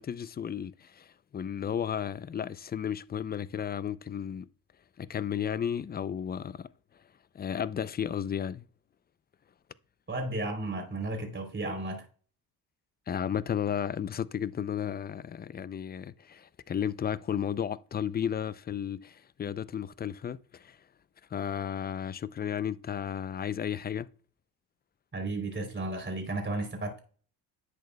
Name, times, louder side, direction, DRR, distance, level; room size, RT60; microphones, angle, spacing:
voice 1, 0.0-4.5 5.0-6.7 7.3-8.7 13.1-20.8 21.3-24.1, left 8 dB, 25° left, 0.4 m, -33 dB
voice 2, 10.1-12.1 25.1-27.0, right 2 dB, 25° right, 3.3 m, -33 dB
10.5 x 8.0 x 2.2 m
supercardioid pair, 70°, 44 cm